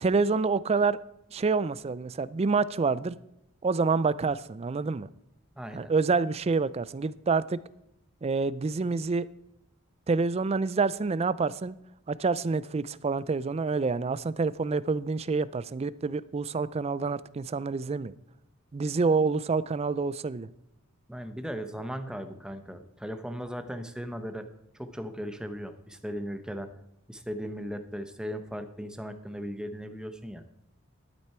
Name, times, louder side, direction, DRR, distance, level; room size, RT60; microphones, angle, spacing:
voice 1, 0.0-1.0 1.3-3.2 3.6-5.1 5.7-7.6 8.2-9.3 10.1-11.8 12.1-18.1 18.7-20.5, right 4 dB, 30° right, 0.4 m, -27 dB
voice 2, 5.6-5.9 21.1-24.5 24.7-26.7 27.1-30.4, equal, 5° right, 0.8 m, -37 dB
12.0 x 9.3 x 4.4 m
head